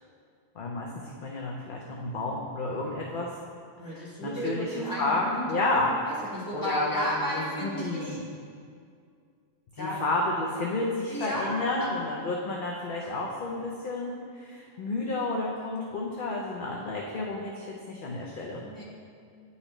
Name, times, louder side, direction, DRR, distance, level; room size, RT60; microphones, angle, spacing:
voice 1, 0.6-3.3 3.9-5.9 6.5-8.2 9.8-18.6, left 2 dB, 55° left, -2 dB, 0.6 m, -31 dB
voice 2, 3.8-8.2 9.8-10.0 11.1-11.9 18.6-18.8, equal, 15° left, -6 dB, 1.3 m, -33 dB
9.6 x 4.1 x 3.0 m, 2.3 s
omnidirectional pair, 1.3 m